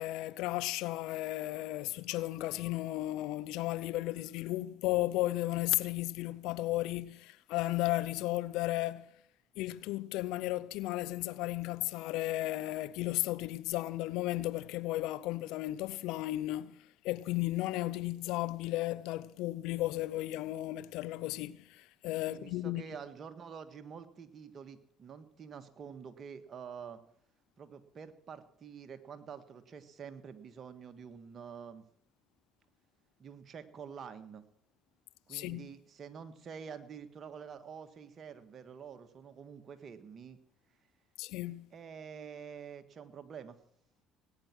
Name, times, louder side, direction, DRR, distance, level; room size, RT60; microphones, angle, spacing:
voice 1, 0.0-9.1 9.6-16.8 17.0-22.8 35.3-35.7 41.2-41.7, left 17 dB, 75° left, 0.6 m, -34 dB
voice 2, 22.3-27.0 27.6-31.8 33.2-34.4 35.3-40.4 41.7-43.6, right 7 dB, 45° right, 1.6 m, -47 dB
19.0 x 9.5 x 6.0 m
hypercardioid pair, 65°, 0 cm